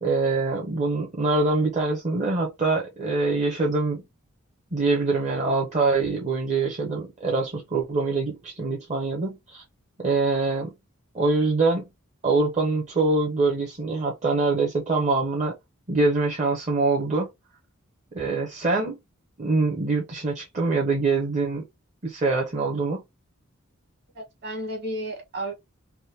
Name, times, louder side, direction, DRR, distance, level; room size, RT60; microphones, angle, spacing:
voice 1, 0.0-4.0 4.7-9.6 10.0-10.7 11.1-11.8 12.2-15.5 15.9-17.3 18.1-19.0 19.4-21.6 22.0-23.0, right 3 dB, 35° right, 0.7 m, -24 dB
voice 2, 24.1-25.5, right 1 dB, 50° right, 1.6 m, -32 dB
3.5 x 2.1 x 2.8 m
head